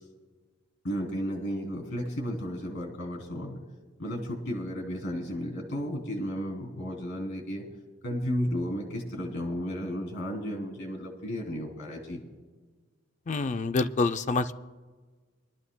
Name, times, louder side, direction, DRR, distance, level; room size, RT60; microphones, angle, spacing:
voice 1, 0.8-3.6 4.0-7.7 8.0-12.2, equal, 55° left, 2 dB, 3.0 m, -33 dB
voice 2, 13.3-14.5, left 3 dB, 35° left, 10 dB, 0.4 m, -27 dB
24.0 x 13.0 x 2.2 m, 1.4 s
head